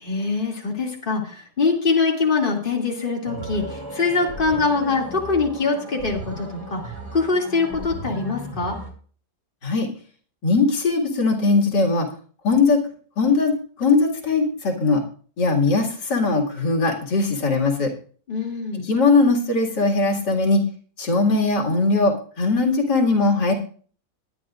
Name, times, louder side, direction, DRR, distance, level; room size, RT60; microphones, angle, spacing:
voice 1, 0.0-8.8 18.3-18.9, left 4 dB, 30° left, -1 dB, 2.6 m, -23 dB
sound 1, 3.2-8.9, right 1 dB, 40° right, 3.1 m, -36 dB
voice 2, 10.4-12.1 12.4-12.8 13.2-13.5 13.8-15.0 15.4-17.9 18.8-20.6 21.0-23.5, left 3 dB, 90° left, 0 dB, 2.8 m, -20 dB
20.5 x 10.5 x 2.5 m, 0.42 s
omnidirectional pair, 1.8 m